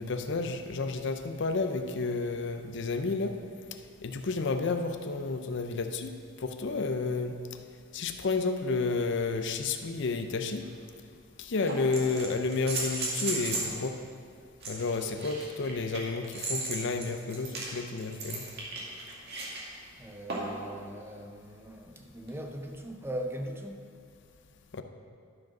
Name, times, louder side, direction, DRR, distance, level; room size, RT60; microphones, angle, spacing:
voice 1, 0.0-3.4 4.0-6.1 6.4-7.3 7.9-10.6 11.4-14.0 14.7-18.4 24.7-24.8, left 3 dB, 60° left, 7 dB, 0.6 m, -31 dB
sound 1, 10.6-10.7 11.7-13.8 14.6-19.6 20.3-20.6 22.3-22.4, right 3 dB, 50° right, 2.0 m, -35 dB
voice 2, 20.0-23.9, right 1 dB, 10° right, 3 dB, 0.6 m, -40 dB
12.0 x 5.1 x 5.9 m, 2.2 s
head